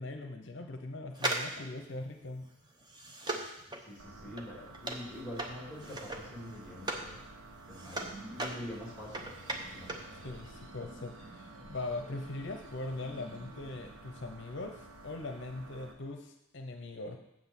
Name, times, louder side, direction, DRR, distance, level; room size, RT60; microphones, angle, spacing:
voice 1, 0.0-2.5 10.1-17.2, left 2 dB, 55° left, 5 dB, 0.7 m, -41 dB
sound 1, 1.1-7.1 7.5-10.1 10.4-10.5, right 2 dB, 20° right, 0.8 m, -39 dB
voice 2, 3.9-7.2 7.7-9.9, left 1 dB, 5° right, -4 dB, 2.8 m, -45 dB
sound 2, 4.0-15.9, right 2 dB, 80° right, 1.1 m, -52 dB
sound 3, 7.8-13.9, right 1 dB, 60° right, 1.1 m, -53 dB
7.6 x 6.1 x 7.3 m, 0.88 s
head